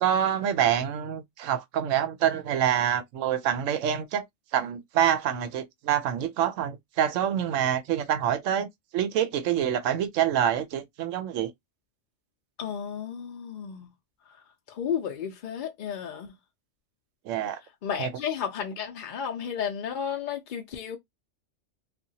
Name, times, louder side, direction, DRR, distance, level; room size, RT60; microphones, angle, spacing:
voice 1, 0.0-4.2 4.5-8.7 8.9-11.5 17.3-17.6 18.0-18.1, right 10 dB, 85° right, 0.9 m, -26 dB
voice 2, 12.6-13.9 14.7-16.3 17.8-21.0, left 8 dB, 60° left, 0.5 m, -33 dB
2.8 x 2.4 x 2.6 m
omnidirectional pair, 1.3 m